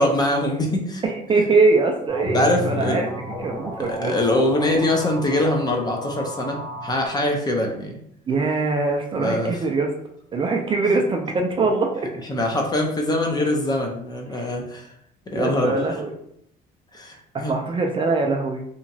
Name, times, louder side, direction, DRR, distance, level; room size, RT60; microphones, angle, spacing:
voice 1, 0.0-1.0 2.3-3.1 3.8-8.0 9.1-9.6 10.9-11.0 12.3-14.9 15.3-15.8 16.9-17.5, left 1 dB, 25° left, 2 dB, 0.6 m, -23 dB
voice 2, 1.0-4.1 8.3-9.9 10.3-11.9 14.3-14.5 15.3-16.1 17.3-18.6, right 3 dB, 30° right, 2 dB, 0.4 m, -22 dB
sound 1, 2.1-7.1, equal, ahead, 1.0 m, -32 dB
2.9 x 2.3 x 2.6 m, 0.72 s
cardioid pair, 110°, 17 cm